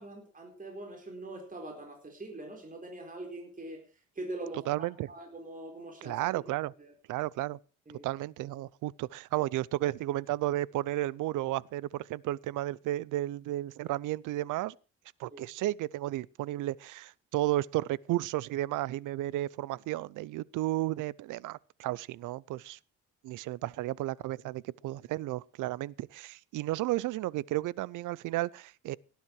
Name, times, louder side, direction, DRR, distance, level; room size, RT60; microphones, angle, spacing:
voice 1, 0.0-6.2 6.8-6.9 7.9-8.1 15.3-15.4, right 2 dB, 25° right, 4.6 m, -43 dB
voice 2, 4.7-5.1 6.0-6.7 7.1-7.6 8.0-14.7 15.2-22.8 23.2-29.0, right 16 dB, 85° right, 0.6 m, -33 dB
18.0 x 10.5 x 4.8 m
cardioid pair, 90°, 30 cm